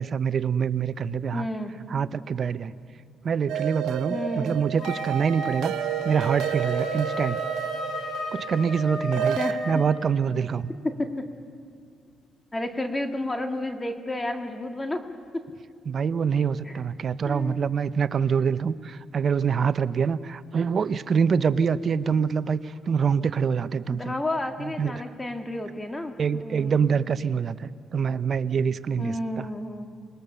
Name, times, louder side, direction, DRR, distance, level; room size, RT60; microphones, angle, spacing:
voice 1, 0.0-1.5 1.9-2.7 3.2-5.7 6.0-7.4 8.3-9.4 9.7-10.7 15.9-24.1 24.6-24.9 26.2-29.5, right 6 dB, 50° right, 14 dB, 0.7 m, -25 dB
voice 2, 1.3-1.7 4.1-4.6 9.4-9.8 10.8-11.2 12.5-15.1 15.3-15.4 16.7-16.8 17.3-17.7 23.9-26.8 29.0-29.9, left 1 dB, 15° left, 5 dB, 1.9 m, -31 dB
sound 1, 3.5-9.5, right 10 dB, 85° right, 0.7 m, -31 dB
Wind instrument woodwind instrument, 4.8-10.0, left 2 dB, 65° left, 4.8 m, -34 dB
26.5 x 20.0 x 6.7 m, 2.3 s
cardioid pair, 90°, 0 cm